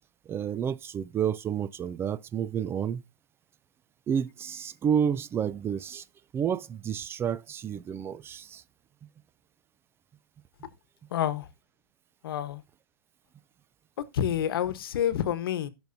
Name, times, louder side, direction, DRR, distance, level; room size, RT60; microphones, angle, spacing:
voice 1, 0.3-3.0 4.1-6.0 6.3-8.6, right 8 dB, 20° right, 0.4 m, -30 dB
voice 2, 11.1-11.5 12.2-12.6 14.1-15.7, left 10 dB, 75° left, 1.1 m, -28 dB
17.0 x 6.1 x 2.7 m
hypercardioid pair, 130°, 12 cm